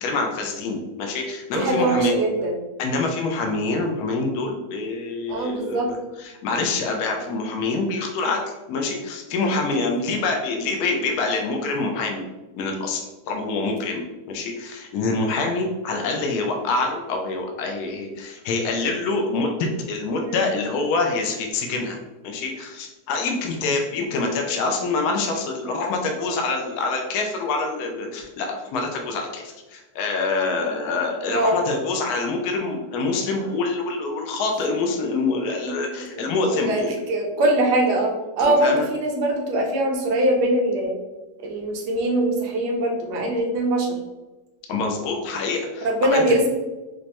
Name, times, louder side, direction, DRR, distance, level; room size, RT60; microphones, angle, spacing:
voice 1, 0.0-2.1 2.8-8.4 8.7-12.2 12.6-13.0 13.3-22.0 22.2-29.4 29.7-37.0 38.4-38.9 44.7-46.2, left 3 dB, 70° left, 2 dB, 1.0 m, -26 dB
voice 2, 1.5-2.6 5.3-5.9 20.2-20.4 24.3-24.4 31.3-31.6 35.6-35.8 36.1-41.0 41.4-44.0 45.8-46.5, right 1 dB, 75° right, 0 dB, 1.3 m, -22 dB
5.1 x 2.1 x 2.9 m, 1.1 s
omnidirectional pair, 1.8 m